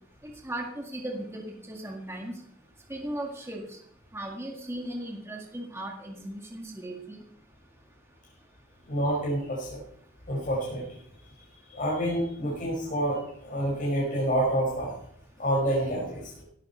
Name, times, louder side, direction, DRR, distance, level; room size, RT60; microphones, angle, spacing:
voice 1, 0.2-2.4 2.9-3.8 4.1-7.2, right 1 dB, 10° right, 1 dB, 1.9 m, -37 dB
voice 2, 8.9-9.8 10.3-10.8 11.7-14.9 15.4-16.4, right 1 dB, 40° left, -5 dB, 5.1 m, -28 dB
17.0 x 13.0 x 4.4 m, 0.65 s
head